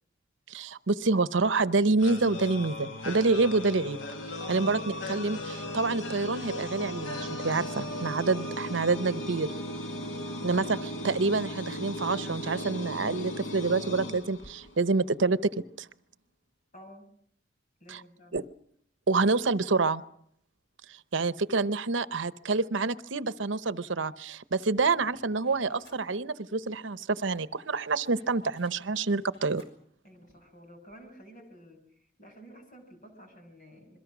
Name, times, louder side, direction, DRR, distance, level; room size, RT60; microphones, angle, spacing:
voice 1, 0.5-4.0 4.5-4.8 5.1-7.2 7.4-9.5 10.4-15.9 17.9-18.0 18.3-18.4 19.1-20.0 21.1-29.6, right 3 dB, 80° right, 14 dB, 0.9 m, -27 dB
sound 1, 2.0-14.9, left 1 dB, 85° left, 1.8 m, -37 dB
voice 2, 4.4-4.8 9.9-10.7 16.7-17.1 17.8-18.4 30.0-34.0, equal, 45° left, 5 dB, 6.0 m, -51 dB
sound 2, 24.8-26.1 26.9-27.0 27.3-29.7 30.6-30.7 30.9-31.1, left 1 dB, 70° left, 6.2 m, -60 dB
27.5 x 22.0 x 6.1 m, 0.68 s
head